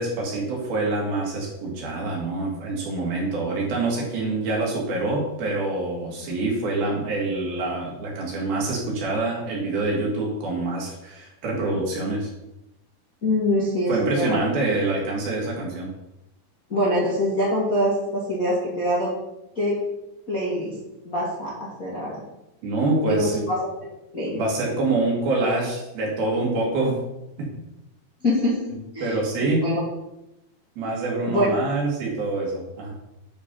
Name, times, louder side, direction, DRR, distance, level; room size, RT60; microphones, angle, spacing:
voice 1, 0.0-12.3 13.9-15.9 22.6-23.4 24.3-27.0 27.4-27.5 29.0-29.7 30.8-32.9, right 2 dB, 60° right, -3 dB, 3.8 m, -26 dB
voice 2, 13.2-14.4 16.7-19.1 19.5-19.8 20.3-20.7 21.0-22.2 23.1-23.6 24.1-24.4 28.2-28.6 28.9-29.2 29.6-29.8 31.3-31.5, left 1 dB, 30° left, -7 dB, 1.5 m, -24 dB
11.0 x 4.8 x 5.5 m, 0.90 s
omnidirectional pair, 5.2 m